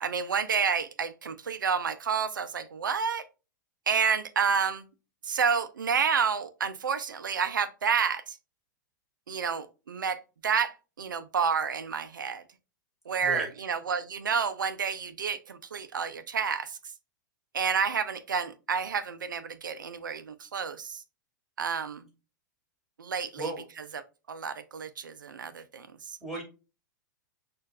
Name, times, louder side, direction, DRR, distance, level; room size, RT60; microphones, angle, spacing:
voice 1, 0.0-3.2 3.9-4.9 5.2-8.4 9.3-12.4 13.1-16.8 17.5-21.0 21.6-22.1 23.0-23.5 23.9-24.0 24.3-26.2, right 6 dB, 85° right, 0.5 m, -29 dB
voice 2, 13.2-13.5 23.4-23.7 26.2-26.4, right 1 dB, ahead, 2.1 m, -35 dB
6.2 x 2.5 x 2.3 m
hypercardioid pair, 105°, 10 cm